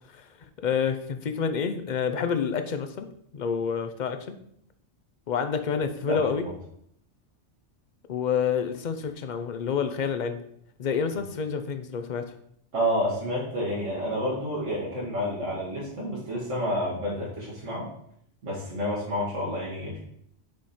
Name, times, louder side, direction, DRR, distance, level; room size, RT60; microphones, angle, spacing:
voice 1, 0.6-3.1 3.3-4.4 5.3-6.5 8.1-10.4 10.8-12.3, left 6 dB, 50° left, 8 dB, 0.6 m, -28 dB
voice 2, 12.7-17.9 18.4-20.0, equal, 80° right, -5 dB, 2.0 m, -29 dB
6.3 x 4.8 x 4.2 m, 0.70 s
omnidirectional pair, 1.2 m